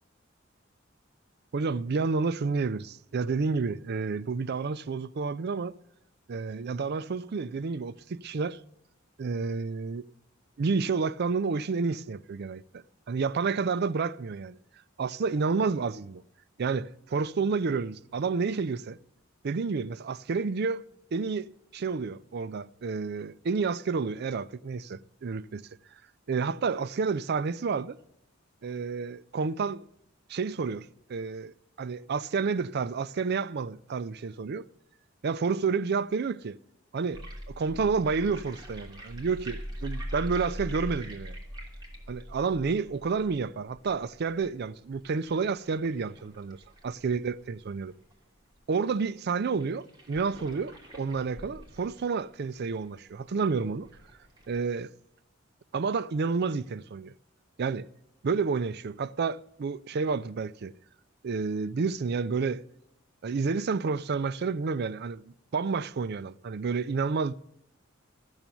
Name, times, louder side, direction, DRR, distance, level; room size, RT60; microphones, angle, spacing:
voice 1, 1.5-5.8 6.3-8.6 9.2-10.0 10.6-14.6 15.0-16.2 16.6-19.0 19.4-20.8 21.1-25.6 26.3-28.0 28.6-29.8 30.3-34.6 35.2-36.6 36.9-41.4 42.1-46.6 46.8-47.9 48.7-53.9 54.5-54.9 55.7-57.1 57.6-57.9 58.2-60.7 61.2-62.6 63.2-67.4, right 4 dB, 55° right, 0.4 m, -30 dB
sound 1, 37.1-48.1 48.6-48.7 48.8-48.9 49.5-54.6, equal, 20° right, 3.0 m, -42 dB
14.0 x 7.1 x 9.0 m
head